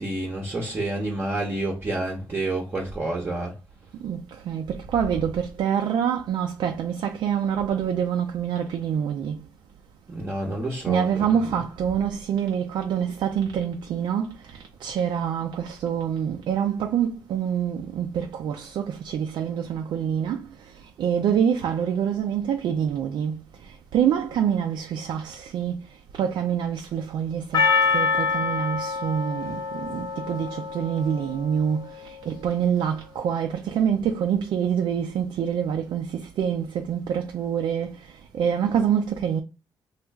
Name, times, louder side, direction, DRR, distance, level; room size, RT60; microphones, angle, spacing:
voice 1, 0.0-3.5 10.1-11.6, right 2 dB, 25° right, 0.7 m, -29 dB
voice 2, 4.0-9.4 10.9-39.4, right 8 dB, 85° right, 0.4 m, -26 dB
Percussion, 27.5-31.8, left 5 dB, 65° left, 0.9 m, -26 dB
3.1 x 2.4 x 3.4 m
cardioid pair, 125°, 8 cm